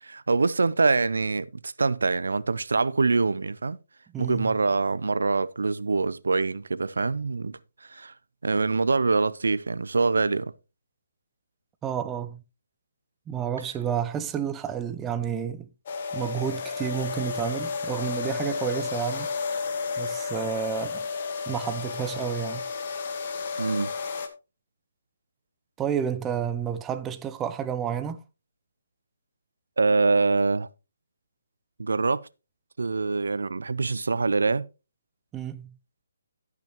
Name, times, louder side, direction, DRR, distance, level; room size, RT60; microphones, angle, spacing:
voice 1, 0.0-3.8 4.2-8.1 8.4-10.5 23.6-23.9 29.8-30.7 31.8-32.3 32.8-34.7, right 3 dB, 85° right, 0.5 m, -24 dB
voice 2, 4.1-4.5 11.8-12.4 13.3-15.7 16.1-19.3 20.0-21.1 21.5-22.6 25.8-28.2 35.3-35.7, right 8 dB, 10° right, 0.4 m, -30 dB
sound 1, 15.9-24.3, left 5 dB, 40° left, 1.5 m, -32 dB
16.0 x 5.9 x 3.0 m
hypercardioid pair, 160°, 0 cm